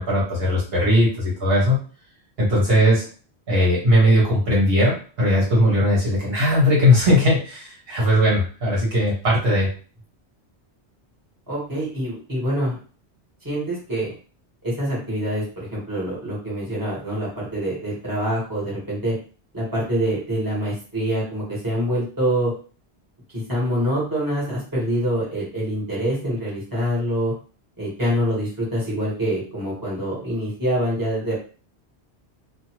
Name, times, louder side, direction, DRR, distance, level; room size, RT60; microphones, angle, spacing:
voice 1, 0.0-1.8 2.4-3.0 3.5-9.7, equal, 65° right, -6 dB, 1.2 m, -18 dB
voice 2, 11.5-12.8 13.4-14.1 14.6-19.1 19.5-22.5 23.3-27.3 27.8-31.4, equal, 20° right, -7 dB, 1.3 m, -25 dB
2.6 x 2.3 x 2.9 m, 0.39 s
omnidirectional pair, 1.1 m